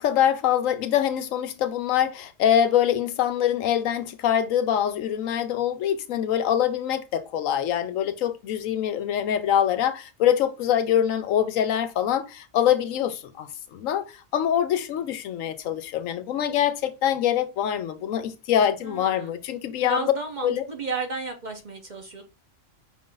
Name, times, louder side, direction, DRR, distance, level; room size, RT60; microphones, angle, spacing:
voice 1, 0.0-14.0 14.3-20.1 20.4-20.7, left 10 dB, 85° left, 1.0 m, -24 dB
voice 2, 18.8-19.3 19.8-22.2, right 3 dB, 40° right, 0.8 m, -33 dB
5.5 x 2.5 x 3.8 m
omnidirectional pair, 1.3 m